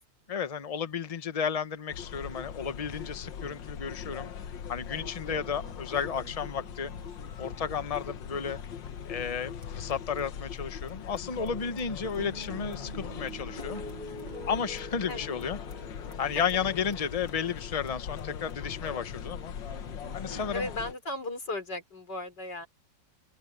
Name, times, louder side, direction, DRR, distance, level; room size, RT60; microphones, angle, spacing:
voice 1, 0.3-4.3 4.7-6.9 7.4-8.6 9.1-13.8 14.5-15.6 16.2-19.5 20.1-20.7, left 6 dB, 25° left, 0.8 m, -33 dB
sound 1, 1.9-20.9, left 8 dB, 85° left, 1.8 m, -40 dB
sound 2, 4.9-9.9 10.2-10.3 10.5-10.6 10.8-11.2 11.4-14.2 14.8-14.9 15.1-15.8 16.1-16.2 16.5-16.6 16.9-17.3 17.6-17.7 17.9-18.6 18.8-18.9 19.6-20.8, right 4 dB, 75° right, 3.7 m, -54 dB
sound 3, 12.2-18.8, right 1 dB, 25° right, 1.6 m, -46 dB
voice 2, 20.1-22.7, left 2 dB, 65° left, 5.9 m, -37 dB
open air
omnidirectional pair, 2.0 m